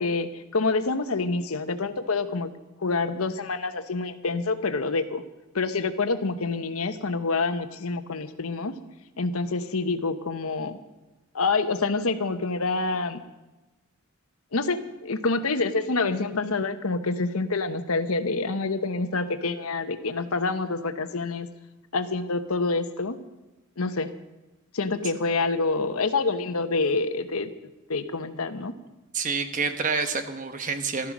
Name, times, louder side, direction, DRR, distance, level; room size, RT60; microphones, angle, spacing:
voice 1, 0.0-2.5 2.8-5.2 5.5-8.7 9.2-10.8 11.3-13.2 14.5-21.5 21.9-23.2 23.8-24.1 24.7-27.5 27.9-28.7, left 3 dB, 85° left, 10 dB, 1.0 m, -27 dB
voice 2, 29.1-31.1, right 5 dB, 35° right, 8 dB, 1.0 m, -28 dB
14.5 x 13.0 x 6.1 m, 1.1 s
head